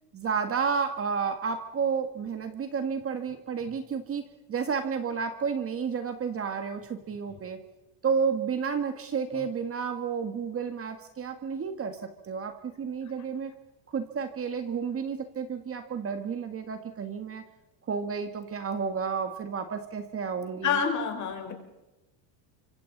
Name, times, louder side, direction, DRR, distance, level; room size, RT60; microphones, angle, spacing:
voice 1, 0.1-4.2 4.5-7.6 8.0-13.5 13.9-17.4 17.9-20.8, right 6 dB, 30° right, 7 dB, 1.7 m, -31 dB
voice 2, 20.6-21.5, left 6 dB, 35° left, 4 dB, 4.9 m, -28 dB
29.0 x 25.5 x 4.1 m, 1.0 s
cardioid pair, 140°, 48 cm